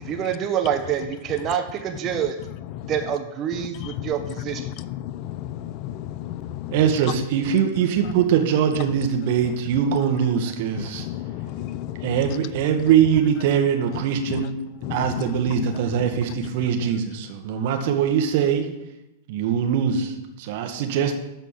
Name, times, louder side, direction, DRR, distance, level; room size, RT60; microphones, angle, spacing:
voice 1, 0.0-2.4 2.9-4.7, right 9 dB, 35° right, 1.5 m, -26 dB
voice 2, 2.6-3.1 3.5-6.8 8.0-8.1 9.4-9.5 10.8-12.4 13.9-14.0 14.3-14.5 14.8-15.7 16.0-16.1 16.4-16.7, left 13 dB, 45° left, 0.6 m, -33 dB
voice 3, 6.7-11.1 12.0-14.5 14.9-18.6 19.3-21.1, right 8 dB, 55° right, 1.6 m, -22 dB
13.0 x 4.4 x 7.4 m
figure-of-eight pair, 95°, 0 cm